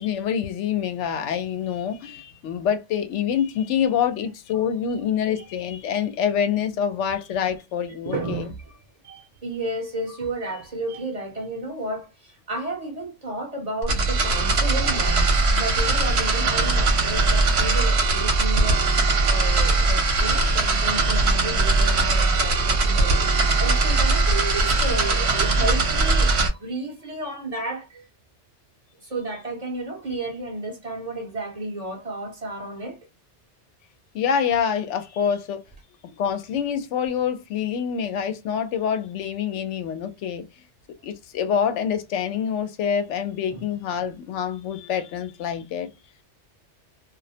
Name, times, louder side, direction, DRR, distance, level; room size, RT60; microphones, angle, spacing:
voice 1, 0.0-8.5 34.1-35.6 36.0-40.4 41.0-45.9, left 8 dB, 90° left, 0.9 m, -26 dB
voice 2, 7.9-8.7 9.0-28.1 29.0-33.0 43.5-43.6, right 2 dB, 45° right, 0.6 m, -32 dB
sound 1, 13.8-26.5, right 3 dB, 70° right, 0.9 m, -20 dB
2.4 x 2.0 x 2.6 m
omnidirectional pair, 1.2 m